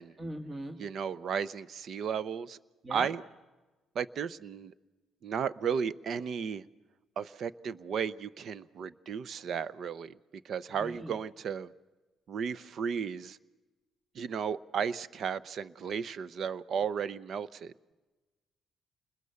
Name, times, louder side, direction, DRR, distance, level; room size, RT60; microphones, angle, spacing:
voice 1, 0.2-0.7 2.8-3.1 10.8-11.1, right 1 dB, 35° right, 4 dB, 1.8 m, -39 dB
voice 2, 0.8-2.6 2.9-3.2 3.9-4.7 5.2-6.6 7.2-10.1 10.4-11.7 12.3-13.4 14.1-17.7, right 7 dB, 60° right, 17 dB, 0.7 m, -34 dB
29.0 x 21.0 x 6.9 m, 1.2 s
cardioid pair, 90°, 0 cm